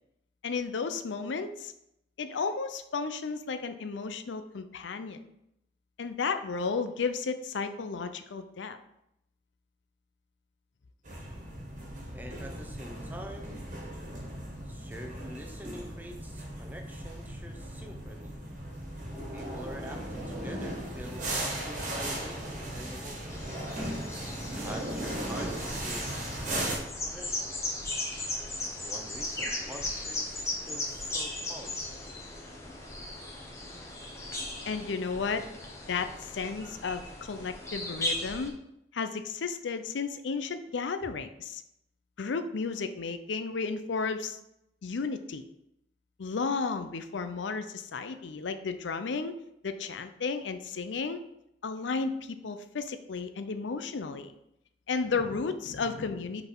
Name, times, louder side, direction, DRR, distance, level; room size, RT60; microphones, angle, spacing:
voice 1, 0.4-1.7 2.2-5.2 6.0-8.8 34.7-35.4 35.9-38.5 38.9-41.6 42.2-44.4 44.8-45.4 46.2-49.4 49.6-51.2 51.6-54.3 54.9-56.4, left 4 dB, 85° left, 10 dB, 0.5 m, -33 dB
sound 1, 11.0-26.8, right 1 dB, 45° right, 1.4 m, -37 dB
voice 2, 12.1-13.6 14.7-18.4 19.3-23.5 24.5-27.6 28.6-32.0, equal, 10° right, 3 dB, 0.6 m, -46 dB
sound 2, 23.3-38.5, left 2 dB, 15° left, 1.0 m, -37 dB
5.4 x 4.1 x 4.5 m, 0.81 s
head